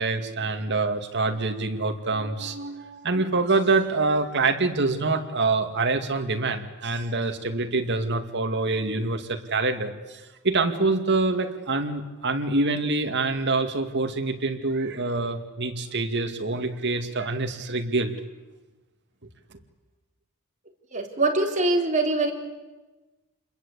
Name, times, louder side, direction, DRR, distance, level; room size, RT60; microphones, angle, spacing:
voice 1, 0.0-18.1, right 3 dB, 50° right, 5 dB, 2.4 m, -26 dB
voice 2, 20.9-22.3, right 2 dB, 35° right, 1 dB, 3.7 m, -23 dB
28.5 x 21.5 x 8.4 m, 1.1 s
head